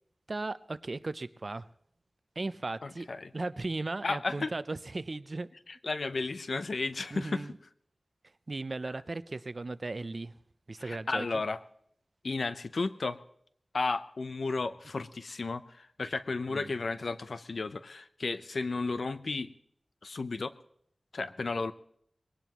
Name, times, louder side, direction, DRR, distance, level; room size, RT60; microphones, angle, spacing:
voice 1, 0.3-1.7 2.4-3.1 3.3-5.5 7.1-7.6 8.5-10.4 10.7-11.4 16.5-16.7, right 2 dB, 55° right, 15 dB, 0.6 m, -36 dB
voice 2, 2.8-3.3 4.0-4.5 5.8-7.4 10.8-11.6 12.2-13.2 13.7-19.5 20.0-20.5 21.1-21.7, left 3 dB, 85° left, 12 dB, 0.7 m, -33 dB
21.5 x 18.0 x 3.1 m, 0.68 s
wide cardioid pair, 70°, 0 cm